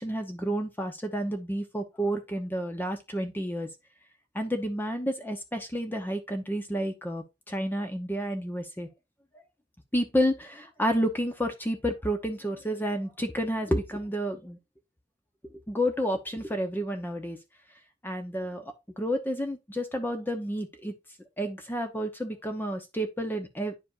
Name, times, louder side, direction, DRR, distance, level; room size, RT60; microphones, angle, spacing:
voice 1, 0.0-3.7 4.3-8.9 9.9-14.6 15.7-17.4 18.0-20.9 21.4-23.7, equal, 10° left, 0.8 m, -30 dB
9.8 x 5.0 x 2.5 m
head